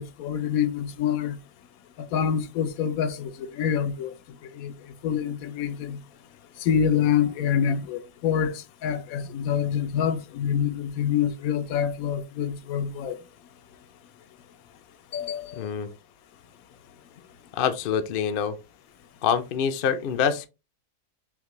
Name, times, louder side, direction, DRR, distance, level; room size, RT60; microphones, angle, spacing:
voice 1, 0.0-1.4 2.1-4.1 4.5-4.7 5.0-6.0 6.6-13.2 15.1-15.7, left 8 dB, 80° left, 1.0 m, -26 dB
voice 2, 15.6-15.9 17.5-18.6 19.2-20.5, left 7 dB, 60° left, 0.6 m, -25 dB
5.8 x 2.2 x 3.0 m
omnidirectional pair, 1.5 m